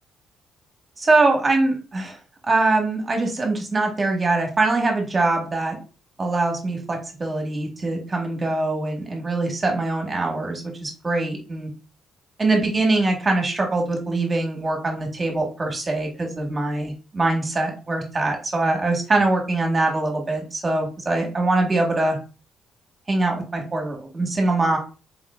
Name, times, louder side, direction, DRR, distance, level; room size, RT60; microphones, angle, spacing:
voice 1, 1.0-2.2 2.5-5.8 6.2-11.7 12.4-22.2 23.1-24.8, right 2 dB, 30° right, 2 dB, 1.2 m, -23 dB
4.0 x 3.7 x 2.3 m, 0.33 s
cardioid pair, 90°, 0 cm